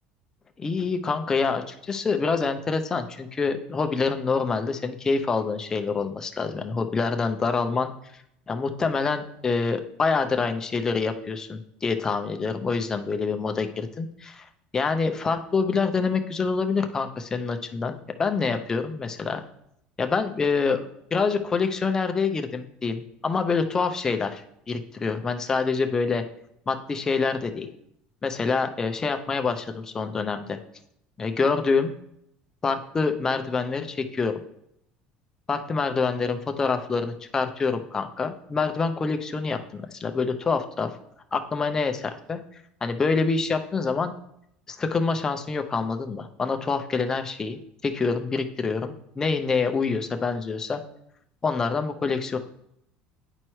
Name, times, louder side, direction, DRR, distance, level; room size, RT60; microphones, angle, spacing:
voice 1, 0.6-7.9 8.5-14.5 14.7-19.4 20.0-26.2 26.7-27.7 28.2-30.6 31.2-31.9 32.6-34.3 35.5-40.9 41.3-44.1 44.7-50.8 51.4-52.4, left 4 dB, 20° left, 6 dB, 0.5 m, -26 dB
9.7 x 4.4 x 3.1 m, 0.75 s
cardioid pair, 145°, 3 cm